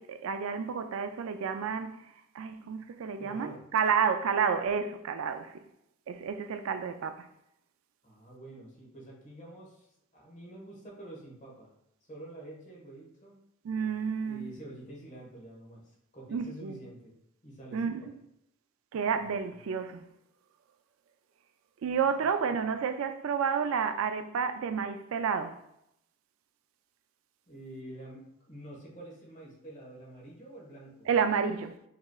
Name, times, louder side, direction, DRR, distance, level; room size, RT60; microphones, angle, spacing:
voice 1, 0.0-2.1 2.3-5.6 6.1-7.3 13.6-14.5 16.3-16.8 17.7-18.0 18.9-20.1 21.8-25.6 31.1-31.8, right 6 dB, 75° right, 0.3 m, -30 dB
voice 2, 3.2-3.6 8.0-11.7 12.1-13.3 14.2-17.1 17.4-18.0 19.1-19.2 22.2-22.4 27.5-31.1, right 1 dB, 35° left, 1.4 m, -48 dB
5.7 x 3.1 x 2.3 m
head